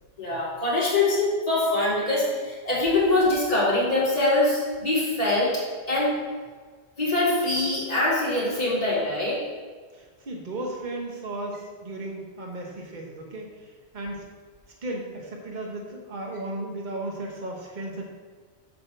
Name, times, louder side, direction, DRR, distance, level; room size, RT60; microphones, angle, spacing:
voice 1, 0.2-5.6 5.9-6.1 7.0-9.4, left 2 dB, 35° left, -9 dB, 2.9 m, -23 dB
voice 2, 9.9-14.2 14.8-18.0, right 1 dB, 40° right, 0 dB, 1.3 m, -35 dB
7.6 x 4.3 x 6.8 m, 1.5 s
omnidirectional pair, 1.2 m